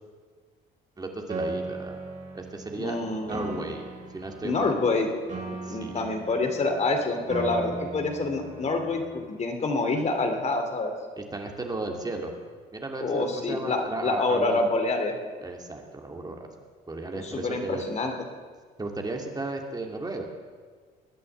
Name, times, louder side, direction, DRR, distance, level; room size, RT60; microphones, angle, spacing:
voice 1, 1.0-2.0 2.3-3.0 3.3-3.9 4.1-4.7 5.6-6.0 11.2-12.3 12.7-14.6 15.4-16.5 16.9-17.9 18.8-20.2, right 2 dB, 20° right, 2 dB, 2.6 m, -34 dB
Piano, 1.3-9.3, right 3 dB, 45° right, 3.6 m, -38 dB
voice 2, 2.8-3.7 4.4-5.1 5.7-10.9 13.0-15.1 17.2-18.1, left 3 dB, 40° left, 4 dB, 2.7 m, -27 dB
21.5 x 8.5 x 8.0 m, 1.6 s
supercardioid pair, 80°, 18 cm